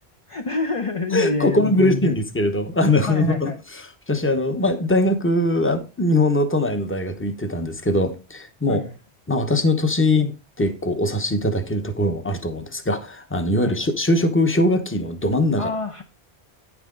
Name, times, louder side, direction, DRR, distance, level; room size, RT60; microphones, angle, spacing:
voice 1, 0.3-2.1 3.1-3.6 8.7-9.0 13.6-13.8 15.6-16.0, left 4 dB, 35° left, 0.7 m, -27 dB
voice 2, 1.1-8.8 9.3-10.3 10.6-15.7, left 1 dB, 15° left, 0.9 m, -21 dB
9.5 x 6.0 x 3.8 m
omnidirectional pair, 1.1 m